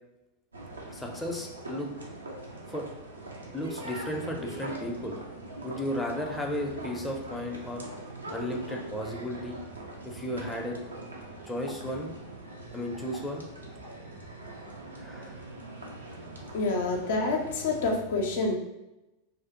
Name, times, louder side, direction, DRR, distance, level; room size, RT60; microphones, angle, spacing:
sound 1, 0.5-18.0, right 2 dB, 90° right, 0.4 m, -42 dB
voice 1, 0.9-1.9 2.7-2.9 3.5-5.2 5.6-7.9 8.3-9.6 10.1-10.8 11.5-12.1 12.7-13.4 15.0-15.4, left 1 dB, 5° left, 0 dB, 0.4 m, -34 dB
voice 2, 16.5-18.5, left 3 dB, 65° left, 1 dB, 0.4 m, -27 dB
2.4 x 2.1 x 2.9 m, 0.96 s
hypercardioid pair, 95°, 0 cm